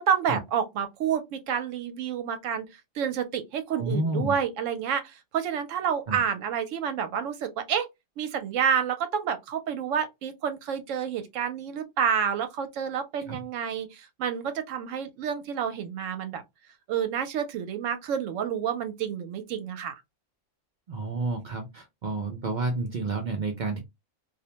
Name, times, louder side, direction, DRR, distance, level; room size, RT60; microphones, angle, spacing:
voice 1, 0.0-2.7 3.0-7.9 8.2-16.4 16.9-19.9, right 8 dB, 75° right, 0.9 m, -29 dB
voice 2, 3.7-4.3 6.1-6.2 13.3-13.4 20.9-23.8, right 3 dB, 60° right, 0.4 m, -30 dB
2.4 x 2.1 x 2.8 m
omnidirectional pair, 1.3 m